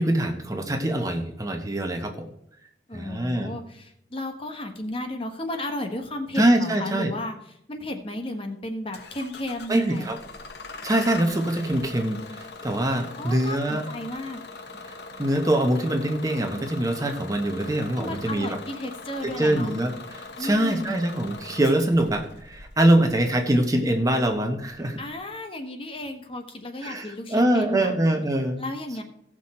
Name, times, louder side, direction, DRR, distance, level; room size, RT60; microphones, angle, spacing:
voice 1, 0.0-2.3 2.9-3.5 6.3-7.1 9.7-10.2 10.8-13.8 14.8-18.6 19.2-25.0 26.8-28.6, right 1 dB, 20° right, 4 dB, 0.9 m, -24 dB
voice 2, 2.9-7.3 7.7-10.1 13.2-14.4 18.0-19.7 20.4-21.0 25.0-27.9 28.6-29.0, left 1 dB, 30° left, 5 dB, 1.2 m, -33 dB
Bus / Engine starting, 8.9-25.1, left 3 dB, 60° left, 1.0 m, -42 dB
16.5 x 6.2 x 4.3 m, 0.76 s
head